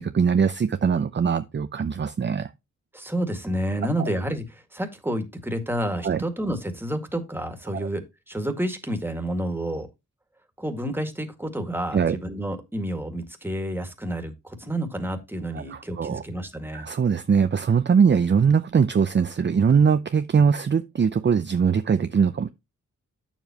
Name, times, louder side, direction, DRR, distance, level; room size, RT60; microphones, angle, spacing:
voice 1, 0.0-2.5 6.0-6.2 7.7-7.9 11.9-12.2 15.5-16.2 16.7-22.5, right 6 dB, 35° right, 0.6 m, -21 dB
voice 2, 2.9-9.9 10.6-16.9, right 1 dB, 5° right, 2.0 m, -30 dB
8.6 x 7.2 x 2.9 m
cardioid pair, 80°, 32 cm